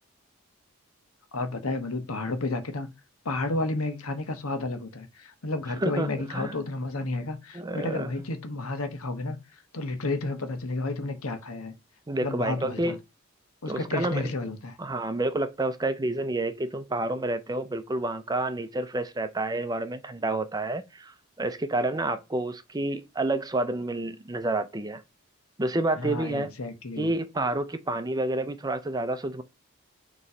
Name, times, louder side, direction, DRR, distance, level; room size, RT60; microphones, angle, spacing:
voice 1, 1.3-2.9 3.2-11.7 12.2-13.0 13.6-14.8 26.0-27.1, left 2 dB, 90° left, 1.2 m, -31 dB
voice 2, 5.8-6.6 7.5-8.1 12.1-13.0 13.7-14.3 14.8-25.0 25.6-26.5 27.0-29.4, right 2 dB, 20° right, 0.5 m, -29 dB
6.9 x 3.1 x 4.9 m
head